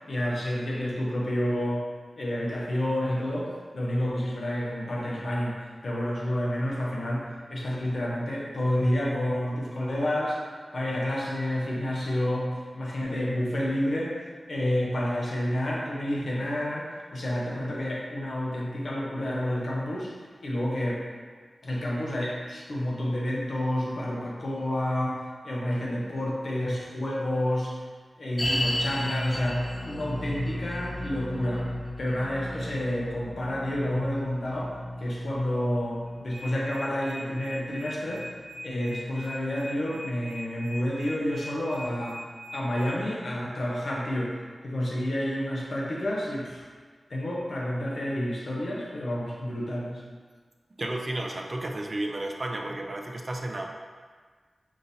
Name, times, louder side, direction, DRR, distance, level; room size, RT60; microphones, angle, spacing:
voice 1, 0.1-1.8 2.2-5.6 5.8-10.4 10.7-12.5 12.7-14.1 14.5-20.1 20.4-21.0 21.6-27.8 28.2-31.7 32.0-34.7 35.0-38.2 38.6-42.2 42.5-44.4 44.6-46.6 47.1-50.0, left 1 dB, 70° left, -4 dB, 0.8 m, -29 dB
sound 1, 28.4-39.7 39.9-40.0 40.7-40.8, equal, 45° left, 1.0 m, -34 dB
sound 2, 36.1-42.9, equal, 65° right, 0.9 m, -43 dB
voice 2, 50.8-53.7, right 1 dB, 40° right, 1 dB, 0.4 m, -32 dB
5.0 x 2.6 x 2.7 m, 1.5 s
wide cardioid pair, 75°, 0 cm